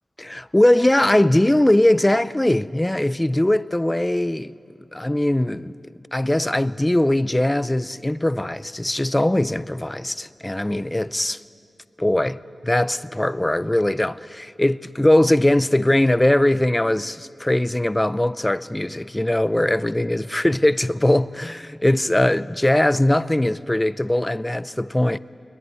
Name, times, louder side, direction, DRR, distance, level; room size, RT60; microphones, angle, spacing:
voice 1, 0.2-4.5 4.9-5.8 6.1-11.4 12.0-25.2, left 1 dB, 15° left, 0.5 m, -20 dB
23.0 x 22.0 x 9.5 m
wide cardioid pair, 115°, 0 cm